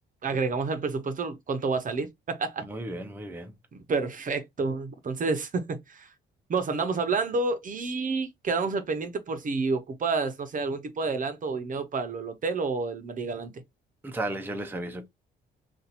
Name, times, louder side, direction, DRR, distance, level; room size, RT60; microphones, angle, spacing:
voice 1, 0.2-2.6 3.7-6.1 6.5-13.6, right 4 dB, 40° right, 0.8 m, -29 dB
voice 2, 2.6-3.5 14.0-15.1, right 1 dB, 10° right, 0.6 m, -34 dB
2.8 x 2.5 x 4.0 m
cardioid pair, 90°, 20 cm